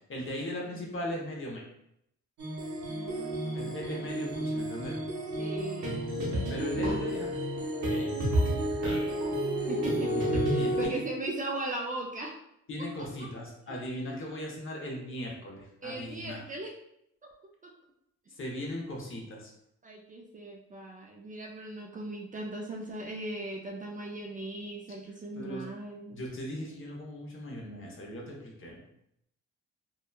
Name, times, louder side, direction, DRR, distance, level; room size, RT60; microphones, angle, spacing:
voice 1, 0.1-1.6 3.5-5.0 6.5-7.3 7.9-8.1 8.8-9.2 10.6-11.1 12.7-16.4 18.4-19.5 25.3-25.7 26.1-28.8, left 1 dB, 40° left, -1 dB, 0.8 m, -38 dB
voice 2, 0.6-1.0 2.9-4.2 5.4-6.0 6.7-7.2 9.7-12.4 13.0-13.1 13.7-14.3 15.8-16.7 17.2-17.3 19.8-26.2, right 2 dB, 30° right, -1 dB, 0.4 m, -39 dB
sound 1, 2.4-10.9, right 1 dB, 70° right, 0.8 m, -30 dB
2.8 x 2.1 x 2.3 m, 0.77 s
cardioid pair, 90°, 30 cm